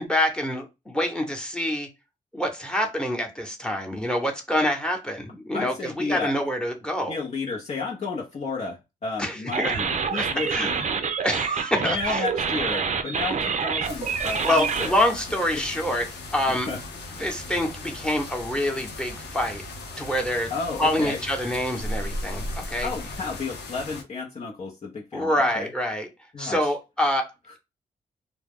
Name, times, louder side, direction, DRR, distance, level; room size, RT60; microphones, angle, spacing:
voice 1, 0.0-1.9 2.3-7.2 9.2-9.7 10.1-10.8 11.2-12.2 14.4-16.7 17.2-19.6 20.0-20.5 20.8-22.9 25.1-26.1 26.4-27.6, left 1 dB, 5° left, 0.9 m, -26 dB
voice 2, 5.5-6.3 7.1-10.8 11.8-14.9 16.5-16.8 20.5-21.2 22.8-25.7 26.3-26.7, left 4 dB, 40° left, 0.7 m, -32 dB
sound 1, 9.5-14.9, right 5 dB, 45° right, 0.5 m, -27 dB
sound 2, 13.8-24.0, left 1 dB, 85° left, 0.7 m, -37 dB
2.2 x 2.0 x 3.5 m
cardioid pair, 50°, 17 cm